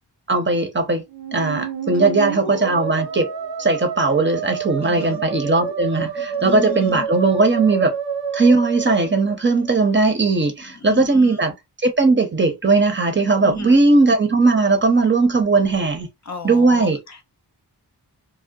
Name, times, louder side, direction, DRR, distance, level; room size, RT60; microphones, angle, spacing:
voice 1, 0.3-1.0 1.3-3.3 3.6-7.9 8.3-11.5 11.8-16.1 16.4-17.0, right 3 dB, 30° right, 0.6 m, -18 dB
Musical instrument, 1.1-9.9, right 7 dB, 85° right, 0.7 m, -29 dB
voice 2, 2.2-2.6 4.8-5.2 6.2-7.1 10.8-11.4 13.4-13.8 16.3-17.2, left 6 dB, 45° left, 0.4 m, -34 dB
2.6 x 2.1 x 2.2 m
wide cardioid pair, 95°, 42 cm